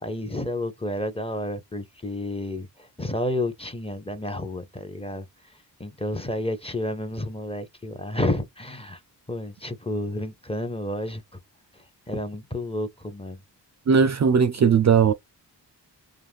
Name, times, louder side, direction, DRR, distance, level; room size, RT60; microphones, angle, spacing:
voice 1, 0.0-5.3 5.8-9.0 9.3-11.2 11.7-13.4, left 1 dB, 15° left, 0.6 m, -30 dB
voice 2, 13.9-15.1, right 6 dB, 40° right, 0.4 m, -18 dB
2.4 x 2.2 x 3.4 m
cardioid pair, 50°, 42 cm